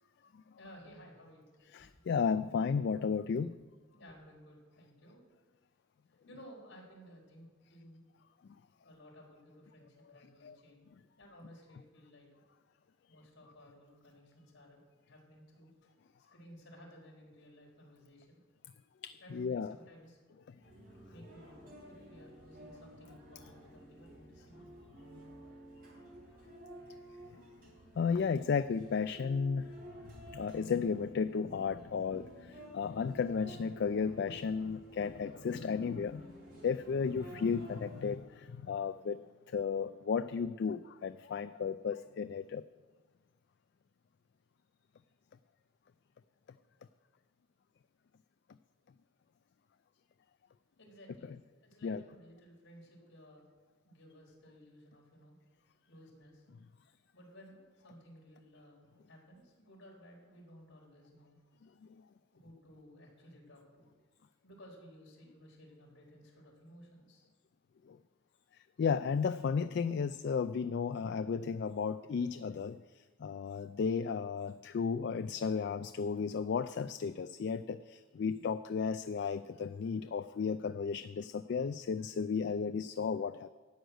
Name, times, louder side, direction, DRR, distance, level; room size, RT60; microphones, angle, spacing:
voice 1, 0.6-1.5 3.9-5.2 6.1-8.0 8.8-10.8 11.2-12.3 13.1-15.7 16.3-18.4 19.2-20.2 21.1-24.6 50.8-51.3 51.6-53.4 53.8-55.4 55.8-56.4 57.1-58.8 59.1-61.4 62.3-63.9 64.4-67.3, equal, 70° left, -2 dB, 4.3 m, -56 dB
voice 2, 1.7-3.6 10.2-10.6 19.0-19.8 20.5-20.6 27.3-27.4 28.0-29.7 30.0-36.3 36.6-42.6 51.8-52.0 61.8-62.0 67.9-68.0 68.5-83.5, left 6 dB, 55° left, 12 dB, 0.3 m, -34 dB
sound 1, 20.6-38.2, right 1 dB, 45° right, 3.4 m, -53 dB
12.5 x 6.3 x 9.2 m, 1.4 s
head